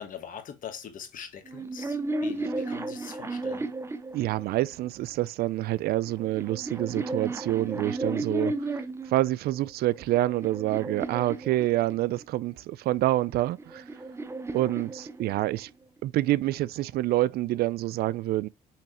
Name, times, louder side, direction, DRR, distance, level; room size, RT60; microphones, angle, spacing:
voice 1, 0.0-3.7, left 8 dB, 55° left, 1.2 m, -42 dB
sound 1, 1.5-4.9 5.8-9.2 9.8-12.3 13.3-15.7, right 2 dB, 15° right, 0.5 m, -34 dB
voice 2, 4.1-13.8 14.5-15.7 16.0-18.5, right 15 dB, 65° right, 0.4 m, -27 dB
5.8 x 3.1 x 2.9 m
cardioid pair, 110°, 17 cm